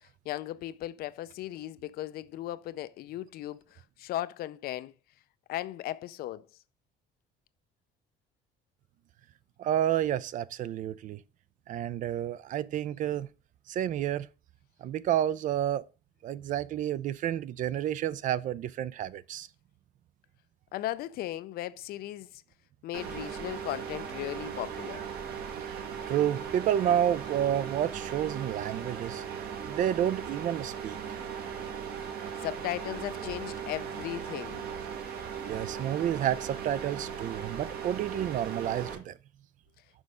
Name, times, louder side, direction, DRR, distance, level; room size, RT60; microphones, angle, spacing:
voice 1, 0.0-4.9 5.5-6.5 20.7-22.4 22.8-25.0 32.4-34.6, left 14 dB, 60° left, 0.5 m, -37 dB
voice 2, 9.6-11.2 11.7-13.3 13.7-14.3 14.8-15.8 16.2-19.5 25.7-25.8 26.1-29.2 29.7-31.2 35.4-39.1, right 11 dB, 50° right, 0.4 m, -30 dB
sound 1, 22.9-39.0, right 7 dB, 65° right, 1.4 m, -38 dB
6.2 x 5.3 x 4.9 m
cardioid pair, 150°, 17 cm